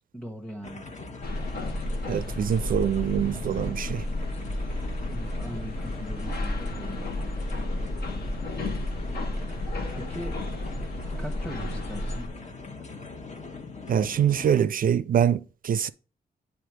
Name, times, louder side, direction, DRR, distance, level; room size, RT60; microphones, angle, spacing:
voice 1, 0.1-0.9 5.1-7.1 9.5-9.7 9.9-10.3 11.2-12.3, right 1 dB, ahead, 1.1 m, -40 dB
Hungarian train ride, 0.6-14.6, left 3 dB, 45° left, 1.2 m, -41 dB
sound 1, 1.2-12.3, left 1 dB, 70° left, 1.2 m, -32 dB
voice 2, 2.1-4.0 13.9-15.9, right 9 dB, 55° right, 0.4 m, -24 dB
7.8 x 3.5 x 4.9 m
supercardioid pair, 50°, 17 cm